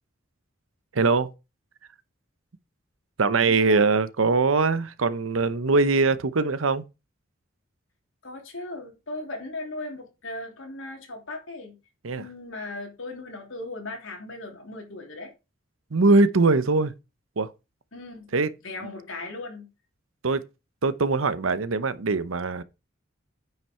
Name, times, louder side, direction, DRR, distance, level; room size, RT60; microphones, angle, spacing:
voice 1, 0.9-1.3 3.2-6.8 12.0-12.3 15.9-16.9 17.4-17.5 18.3-18.5 20.2-20.4 20.8-22.6, right 3 dB, 90° right, 0.8 m, -22 dB
voice 2, 3.4-3.8 8.2-11.8 12.1-15.3 17.9-18.4 18.6-19.7, left 2 dB, 80° left, 3.0 m, -37 dB
9.2 x 5.7 x 4.4 m
head